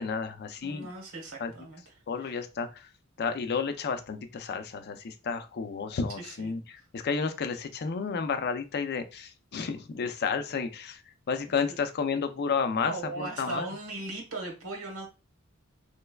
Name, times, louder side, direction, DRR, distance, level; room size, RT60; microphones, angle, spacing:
voice 1, 0.0-0.9 1.4-1.5 2.1-2.9 3.2-11.0 11.3-13.7, left 5 dB, 50° left, 8 dB, 0.4 m, -31 dB
voice 2, 0.6-1.9 2.2-2.3 6.2-6.5 12.7-15.1, right 2 dB, 90° right, 1 dB, 1.2 m, -38 dB
3.2 x 3.1 x 2.3 m, 0.29 s
head